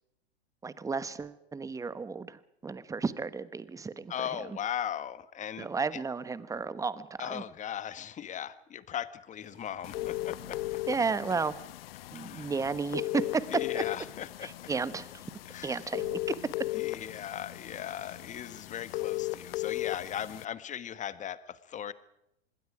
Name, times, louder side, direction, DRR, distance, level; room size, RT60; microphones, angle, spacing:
voice 1, 0.6-4.3 5.6-7.4 10.9-11.5 12.1-13.4 13.7-13.8 14.4-15.2 15.6-16.2, right 4 dB, 10° right, 15 dB, 1.1 m, -33 dB
voice 2, 4.1-6.0 7.2-10.6 12.1-12.5 13.5-14.7 15.4-15.9 16.7-21.9, left 9 dB, 20° left, 14 dB, 1.4 m, -38 dB
Sliding door, 9.3-11.3 14.8-14.9 15.1-16.7 19.3-20.0, right 6 dB, 80° right, 7.2 m, -58 dB
sound 1, 9.8-20.4, left 16 dB, 60° left, 1.0 m, -37 dB
26.0 x 21.0 x 5.0 m, 0.82 s
hypercardioid pair, 115°, 33 cm